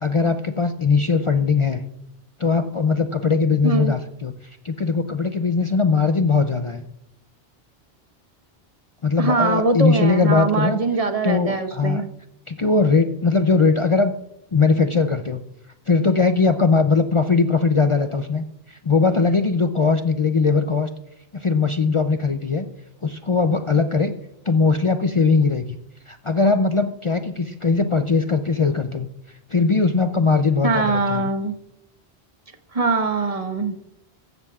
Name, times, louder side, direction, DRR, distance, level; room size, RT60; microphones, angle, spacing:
voice 1, 0.0-1.8 2.4-4.3 4.6-6.8 9.0-10.8 11.2-12.0 12.5-14.1 14.5-15.4 15.9-20.9 21.3-22.7 23.0-24.1 24.5-25.8 26.1-29.1 29.5-31.2, left 4 dB, 40° left, 8 dB, 0.5 m, -20 dB
voice 2, 3.6-3.9 9.2-12.1 30.6-31.6 32.7-33.7, right 3 dB, 35° right, 6 dB, 1.2 m, -22 dB
15.0 x 13.0 x 2.4 m, 0.79 s
omnidirectional pair, 1.1 m